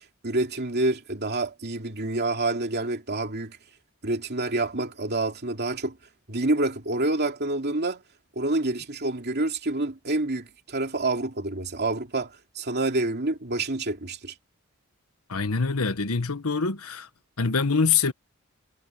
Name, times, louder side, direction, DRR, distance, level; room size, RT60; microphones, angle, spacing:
voice 1, 0.0-3.6 4.0-6.0 6.3-8.0 8.4-14.3, right 2 dB, 50° right, 2.7 m, -27 dB
voice 2, 15.3-17.1 17.4-18.1, left 5 dB, 90° left, 1.3 m, -24 dB
head